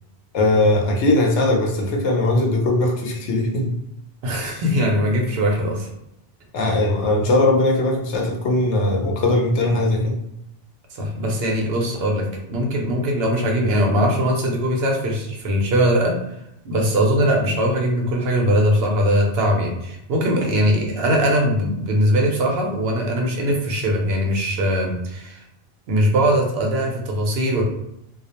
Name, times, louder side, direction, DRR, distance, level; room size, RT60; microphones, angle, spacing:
voice 1, 0.3-3.7 4.4-4.5 6.5-10.1, left 2 dB, 90° left, 1 dB, 0.9 m, -19 dB
voice 2, 4.2-5.9 6.7-6.8 10.9-25.4 25.9-27.6, equal, 65° right, 1 dB, 0.8 m, -21 dB
2.4 x 2.0 x 2.8 m, 0.80 s
omnidirectional pair, 1.1 m